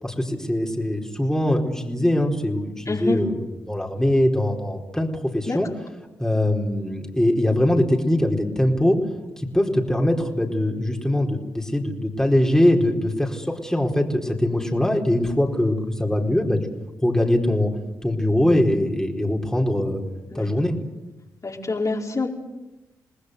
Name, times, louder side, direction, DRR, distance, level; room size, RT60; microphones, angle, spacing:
voice 1, 0.0-3.4 3.7-5.1 5.3-5.7 6.2-9.0 9.4-16.6 17.0-17.7 18.0-20.0 20.3-20.7, left 1 dB, 5° left, 1 dB, 4.4 m, -22 dB
voice 2, 2.9-3.2 5.5-5.6 20.3-20.5 21.4-22.3, left 3 dB, 40° left, 0 dB, 4.6 m, -26 dB
28.0 x 19.5 x 8.2 m, 1.0 s
hypercardioid pair, 40°, 8 cm